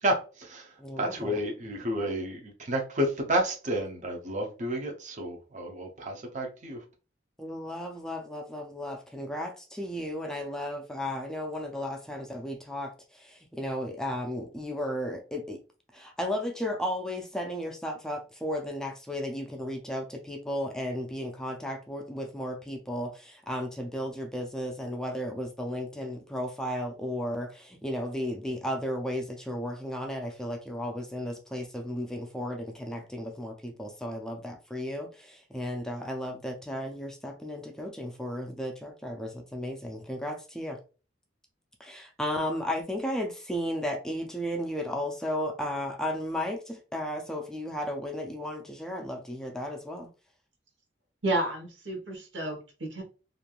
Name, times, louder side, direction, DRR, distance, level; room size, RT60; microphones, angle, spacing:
voice 1, 0.0-6.8, right 1 dB, 40° right, 0.6 m, -31 dB
voice 2, 0.8-1.3 7.4-15.6 15.9-40.8 41.8-50.1, equal, 5° left, 0.3 m, -34 dB
voice 3, 51.2-53.0, right 1 dB, 85° right, 1.0 m, -31 dB
3.1 x 2.5 x 2.3 m
head